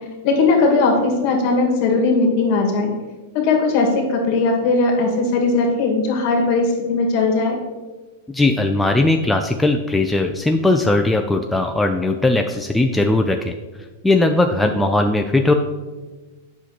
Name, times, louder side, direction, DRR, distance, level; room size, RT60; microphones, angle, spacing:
voice 1, 0.2-2.9 3.3-7.6, left 3 dB, 50° left, 1 dB, 1.7 m, -18 dB
voice 2, 8.3-13.5 14.0-15.5, left 2 dB, 5° left, 4 dB, 0.4 m, -18 dB
7.9 x 5.9 x 2.9 m, 1.3 s
hypercardioid pair, 110°, 0 cm